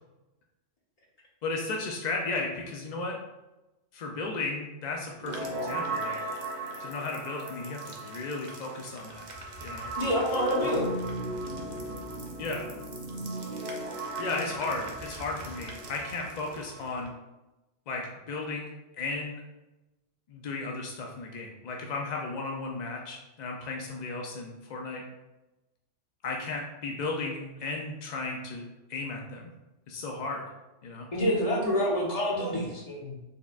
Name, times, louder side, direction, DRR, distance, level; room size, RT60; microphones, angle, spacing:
voice 1, 1.4-3.2 3.9-6.2 6.8-9.3 9.6-9.9 10.6-10.7 12.4-12.7 14.2-17.1 17.9-18.7 19.0-19.4 20.3-25.0 26.2-28.6 28.9-29.5 29.9-30.4 30.8-31.1, left 3 dB, 65° left, 0 dB, 0.4 m, -35 dB
sound 1, 5.2-17.1, right 1 dB, 50° right, 0.6 m, -36 dB
voice 2, 10.0-10.9 31.1-33.2, equal, 35° left, -3 dB, 1.0 m, -27 dB
4.5 x 3.5 x 2.3 m, 1.0 s
omnidirectional pair, 1.3 m